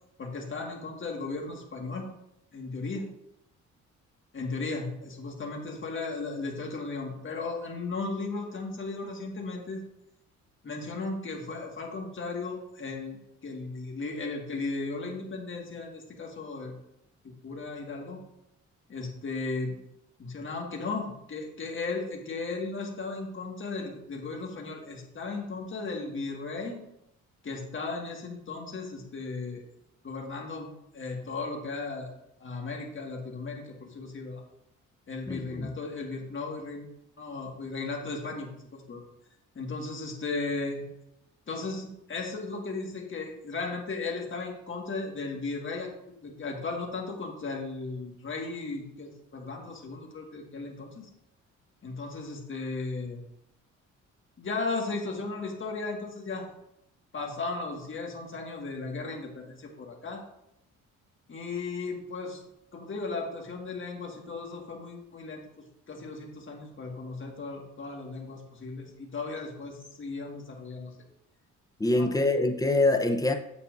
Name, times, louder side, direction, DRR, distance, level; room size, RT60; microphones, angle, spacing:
voice 1, 0.2-2.1 2.5-3.1 4.3-9.8 10.6-16.7 17.4-18.2 18.9-19.8 20.2-26.8 27.4-29.6 30.0-32.1 32.4-34.4 35.1-36.9 37.2-39.0 39.6-40.9 41.5-45.9 46.2-51.1 51.8-53.2 54.4-56.5 57.1-60.2 61.3-62.4 62.7-70.9 71.9-72.1, left 3 dB, 40° left, 0 dB, 1.9 m, -36 dB
voice 2, 35.3-35.7 71.8-73.3, left 2 dB, 10° left, 5 dB, 0.9 m, -25 dB
8.3 x 7.3 x 2.7 m, 0.80 s
cardioid pair, 90°, 30 cm